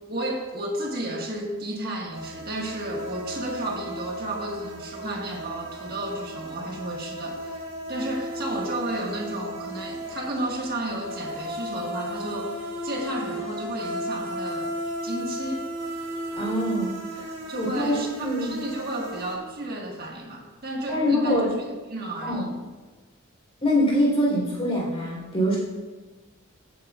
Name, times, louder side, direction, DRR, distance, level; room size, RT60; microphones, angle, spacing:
voice 1, 0.1-7.6 7.9-14.7 15.0-15.7 17.5-21.4 21.9-22.5, right 1 dB, 45° right, -1 dB, 1.7 m, -32 dB
sound 1, 2.1-19.3, equal, 65° right, 2.5 m, -35 dB
voice 2, 16.3-17.3 17.6-17.9 18.2-18.5 20.9-21.5 22.2-22.5 23.6-25.6, equal, 25° left, -3 dB, 3.8 m, -24 dB
16.0 x 9.0 x 2.5 m, 1.3 s
head